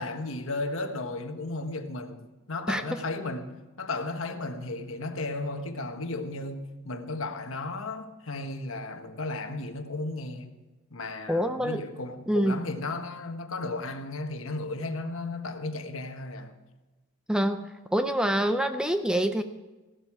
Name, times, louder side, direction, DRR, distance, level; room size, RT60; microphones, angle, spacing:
voice 1, 0.0-10.5 10.9-16.6, left 2 dB, 70° left, 1.4 m, -34 dB
voice 2, 2.7-3.0 11.3-11.8 12.3-12.6 17.3-19.4, equal, 5° right, 0.5 m, -26 dB
15.5 x 12.0 x 4.8 m
head